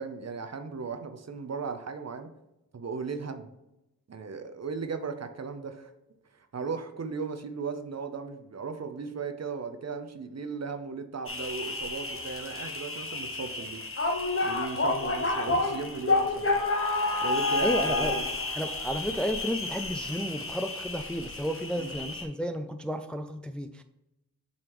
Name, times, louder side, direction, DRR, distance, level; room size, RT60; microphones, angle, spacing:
voice 1, 0.0-2.3 2.7-3.5 4.1-5.9 6.3-13.8 14.4-16.6 17.2-18.2 21.8-21.9, right 5 dB, 50° right, 8 dB, 0.7 m, -36 dB
sound 1, 11.3-22.2, left 2 dB, 40° left, 1.2 m, -30 dB
voice 2, 17.6-18.2 18.5-23.8, equal, 5° left, 8 dB, 0.4 m, -32 dB
7.5 x 4.1 x 3.1 m, 0.91 s
cardioid pair, 60°, 35 cm